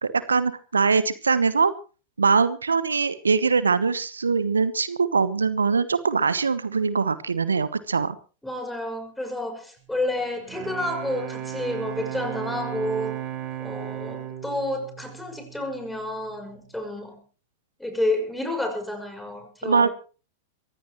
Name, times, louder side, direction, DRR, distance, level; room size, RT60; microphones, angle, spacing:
voice 1, 0.0-1.7 2.2-8.2 19.6-19.9, right 5 dB, 85° right, 15 dB, 1.1 m, -22 dB
voice 2, 8.4-13.1 13.6-17.2 17.8-19.9, left 1 dB, 5° left, 5 dB, 6.0 m, -30 dB
Bowed string instrument, 10.2-16.0, right 11 dB, 40° right, 4.0 m, -35 dB
23.5 x 16.0 x 3.1 m, 0.35 s
hypercardioid pair, 95°, 0 cm